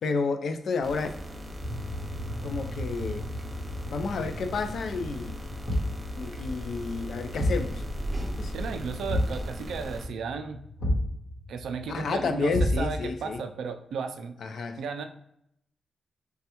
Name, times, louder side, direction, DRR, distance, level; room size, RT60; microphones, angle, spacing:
voice 1, 0.0-1.1 2.4-3.3 3.9-5.4 6.1-7.8 8.4-8.5 11.9-13.4 14.4-14.8, left 4 dB, 65° left, 0.3 m, -30 dB
sound 1, 0.8-10.1, equal, 25° right, 0.5 m, -38 dB
sound 2, 1.6-13.4, equal, 40° left, 1.1 m, -41 dB
Thump thud, 5.7-6.1 7.4-7.7 9.1-9.4 10.8-11.2 12.5-13.1, left 1 dB, 90° left, 1.0 m, -26 dB
voice 2, 8.5-10.6 11.5-14.4 14.8-15.1, right 5 dB, 90° right, 0.3 m, -34 dB
3.2 x 2.2 x 2.9 m
wide cardioid pair, 120°, 0 cm